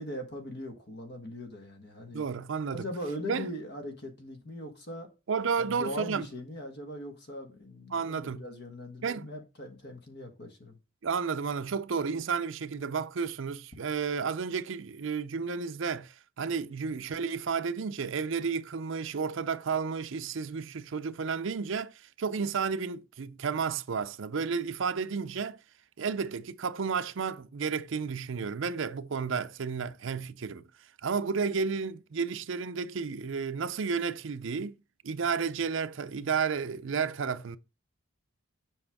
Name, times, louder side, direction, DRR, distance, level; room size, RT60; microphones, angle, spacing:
voice 1, 0.0-2.2 2.7-5.1 5.6-10.8, left 1 dB, 50° left, 1.4 m, -40 dB
voice 2, 2.1-2.8 3.3-3.5 5.3-6.3 7.9-8.4 9.0-9.3 11.0-25.6 26.0-30.7 31.0-34.8 35.0-37.6, right 5 dB, 65° right, 0.5 m, -32 dB
7.6 x 5.3 x 3.5 m
head